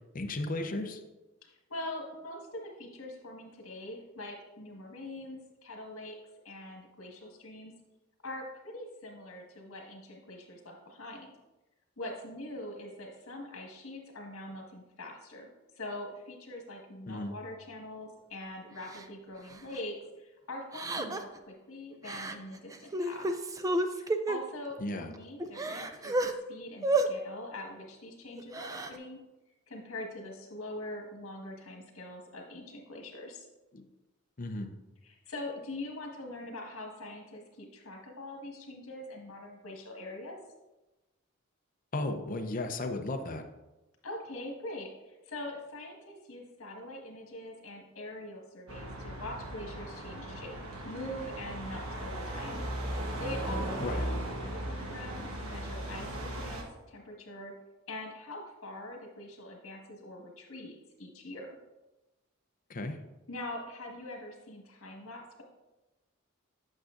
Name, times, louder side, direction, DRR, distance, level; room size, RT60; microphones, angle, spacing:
voice 1, 0.1-1.0 17.1-17.4 24.8-25.1 33.7-33.8 34.4-34.7 41.9-43.4 53.8-54.0 62.7-63.0, left 2 dB, 40° left, 5 dB, 0.6 m, -34 dB
voice 2, 1.5-6.2 6.4-7.7 8.2-11.3 12.0-15.5 15.7-23.3 23.9-29.2 29.7-33.5 35.0-40.4 44.0-50.5 50.8-54.1 54.3-56.1 56.3-56.6 56.9-57.5 57.9-61.5 63.3-65.4, left 1 dB, 75° left, 1 dB, 1.5 m, -43 dB
Crying sobbing, 18.9-19.0 19.5-19.7 20.7-21.4 22.0-22.3 22.7-24.4 25.0-25.1 25.4-26.3 26.8-27.1 28.4-28.9, right 2 dB, 15° right, 0.3 m, -31 dB
sound 1, 48.7-56.6, right 1 dB, 75° right, 1.2 m, -37 dB
8.6 x 6.3 x 2.5 m, 1.1 s
head